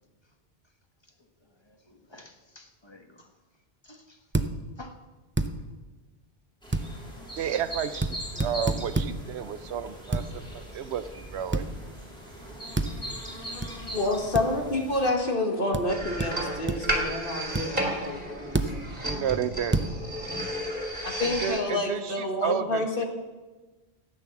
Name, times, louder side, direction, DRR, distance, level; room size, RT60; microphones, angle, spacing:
voice 1, 1.4-3.3 3.8-4.2 4.8-5.0, left 2 dB, 25° left, 4 dB, 1.4 m, -50 dB
sound 1, 4.3-4.5 5.4-5.5 6.7-6.9 8.0-8.1 8.4-9.1 10.1-10.3 11.5-11.7 12.7-12.9 13.6-13.7 14.3-14.5 15.7-15.8 16.2-16.3 16.7-17.0 17.5-17.6 18.5-18.7 19.7-19.9, right 2 dB, 15° right, 0.5 m, -26 dB
sound 2, 6.6-15.1, equal, 5° left, 3.1 m, -41 dB
voice 2, 7.4-10.4 10.7-11.7 19.2-19.9 21.2-23.0, right 9 dB, 90° right, 14 dB, 0.9 m, -31 dB
voice 3, 13.9-18.5 21.0-23.1, left 2 dB, 55° left, 3 dB, 2.0 m, -28 dB
sound 3, 15.9-21.6, right 1 dB, 40° right, 2.7 m, -32 dB
14.0 x 9.1 x 7.2 m, 1.2 s
omnidirectional pair, 1.1 m